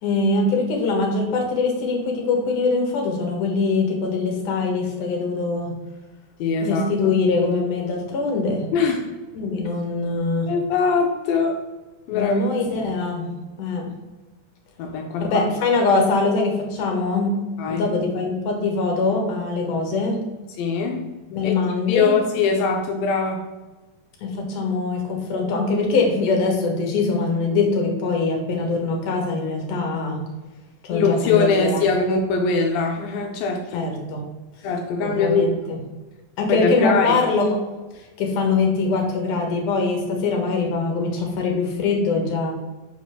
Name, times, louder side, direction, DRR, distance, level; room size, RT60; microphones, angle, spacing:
voice 1, 0.0-5.7 6.6-8.7 9.3-10.5 12.1-13.3 13.6-13.9 15.2-17.3 17.7-20.2 21.3-22.1 24.2-30.2 30.8-31.9 33.7-34.2 35.0-35.8 36.4-37.6 38.2-42.5, left 3 dB, 65° left, 1 dB, 2.6 m, -23 dB
voice 2, 6.4-6.9 8.7-9.1 10.5-11.6 12.1-12.4 14.8-15.3 17.6-17.9 20.6-21.1 21.4-21.5 21.9-23.5 30.9-33.9 34.6-35.6 36.5-37.2, left 4 dB, 85° left, 3 dB, 2.4 m, -22 dB
5.6 x 4.1 x 6.1 m, 1.2 s
omnidirectional pair, 4.2 m